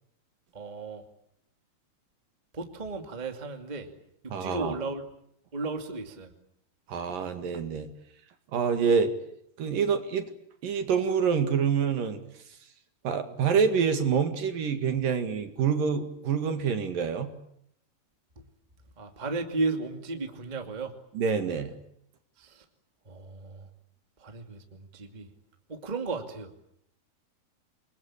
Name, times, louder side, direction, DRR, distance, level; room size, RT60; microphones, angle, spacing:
voice 1, 0.5-1.0 2.5-3.9 4.2-5.0 5.5-6.3 19.0-20.9 22.4-22.6 23.1-23.7 24.2-25.3 25.7-26.5, right 3 dB, 15° right, 5 dB, 1.8 m, -34 dB
voice 2, 4.3-4.8 6.9-7.9 8.5-9.1 9.6-10.3 10.6-12.2 13.0-17.3 21.1-21.8, right 6 dB, 60° right, 7 dB, 3.5 m, -26 dB
28.0 x 22.0 x 8.7 m, 0.73 s
omnidirectional pair, 4.6 m